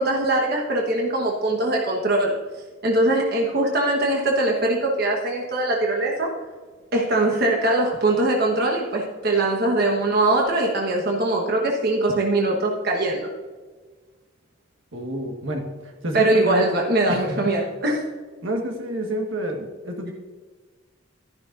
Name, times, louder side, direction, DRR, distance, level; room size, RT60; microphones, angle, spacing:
voice 1, 0.0-2.3 2.8-6.3 6.9-13.3 16.1-18.0, right 2 dB, 50° right, -1 dB, 1.3 m, -22 dB
voice 2, 14.9-16.7 17.1-17.5 18.4-20.1, equal, 75° right, 2 dB, 1.6 m, -29 dB
13.0 x 11.0 x 2.6 m, 1.4 s
head